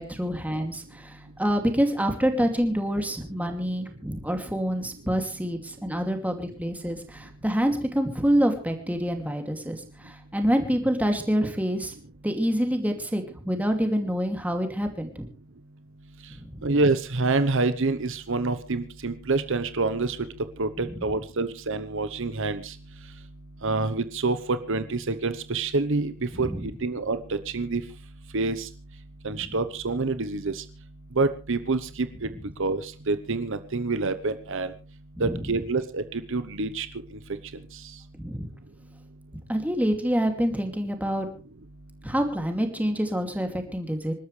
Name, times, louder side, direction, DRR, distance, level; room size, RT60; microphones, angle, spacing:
voice 1, 0.0-11.9 12.2-15.3 16.3-16.7 20.9-21.0 26.3-26.7 29.3-29.5 35.2-35.5 38.2-38.5 39.5-41.3 42.0-44.1, equal, 5° right, 4 dB, 2.6 m, -27 dB
voice 2, 16.6-20.2 20.6-22.7 23.6-27.8 28.3-28.7 29.2-30.6 31.2-32.3 32.6-34.7 35.2-36.9, right 3 dB, 65° right, 11 dB, 1.0 m, -27 dB
27.0 x 12.5 x 3.3 m, 0.34 s
head